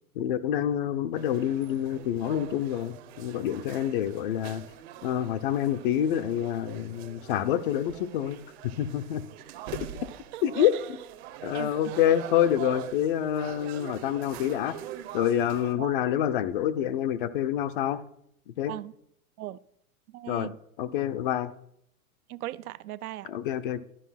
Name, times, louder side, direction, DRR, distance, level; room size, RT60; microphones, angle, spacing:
voice 1, 0.2-4.6 5.0-9.2 10.4-10.7 11.4-14.8 15.1-18.0 18.6-18.7 20.3-20.5 20.8-21.5 23.3-23.8, left 10 dB, 40° left, 0.5 m, -27 dB
sound 1, 1.1-15.7, right 11 dB, 45° right, 0.9 m, -43 dB
voice 2, 10.1-10.8 11.3-12.0 15.8-16.0 18.7-18.9 19.4-19.6 20.1-20.6 22.3-23.3, right 15 dB, 75° right, 0.6 m, -39 dB
12.5 x 5.3 x 5.7 m
supercardioid pair, 150°, 44 cm